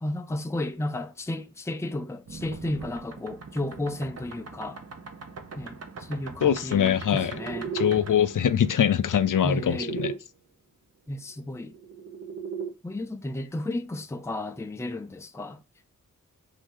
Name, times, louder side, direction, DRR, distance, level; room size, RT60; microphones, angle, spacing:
voice 1, 0.0-4.8 5.6-7.7 9.4-10.0 11.1-11.7 12.8-15.6, left 1 dB, 10° left, 0.4 m, -33 dB
sound 1, 2.3-10.2 11.5-12.7, right 6 dB, 50° right, 0.8 m, -39 dB
voice 2, 6.4-7.3 7.7-10.1, left 9 dB, 70° left, 0.5 m, -23 dB
5.1 x 2.7 x 3.7 m
wide cardioid pair, 75°, 32 cm